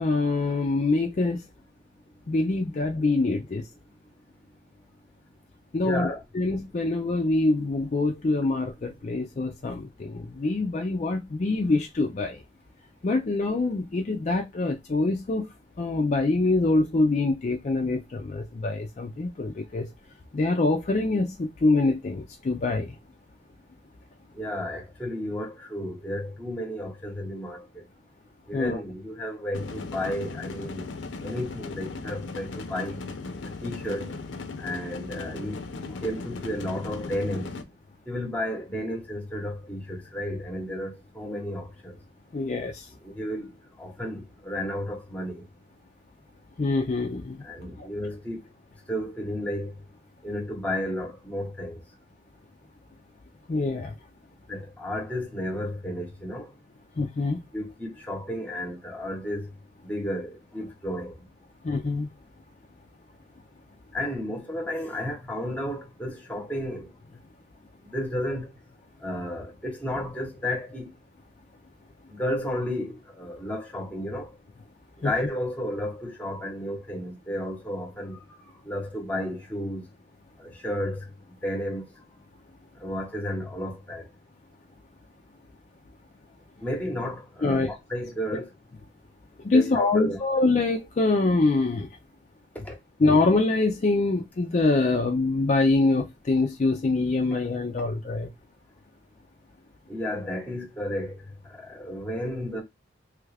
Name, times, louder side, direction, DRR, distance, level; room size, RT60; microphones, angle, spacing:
voice 1, 0.0-1.4 2.3-3.6 5.7-12.4 13.0-15.5 15.8-19.9 20.3-22.9 28.5-28.8 42.3-42.8 46.6-47.4 53.5-53.9 57.0-57.4 61.6-62.1 75.0-75.1 87.4-87.7 89.4-91.9 93.0-98.3, left 3 dB, 40° left, 0.4 m, -24 dB
voice 2, 5.8-6.2 24.3-27.8 28.5-30.8 31.2-33.0 33.6-34.1 34.6-35.6 35.9-37.5 38.1-42.0 43.0-43.5 43.8-45.4 47.4-48.4 48.9-49.7 50.2-51.8 54.5-56.5 57.5-59.5 59.8-61.2 63.9-66.9 67.9-68.5 69.0-70.9 72.1-74.3 75.0-78.2 78.6-79.8 80.4-81.1 81.4-81.8 82.8-84.1 86.6-88.5 89.4-90.2 92.6-92.7 99.9-101.2 101.5-102.6, equal, 10° left, 0.9 m, -32 dB
sound 1, 29.5-37.6, left 3 dB, 80° left, 0.6 m, -37 dB
3.2 x 2.4 x 3.2 m
head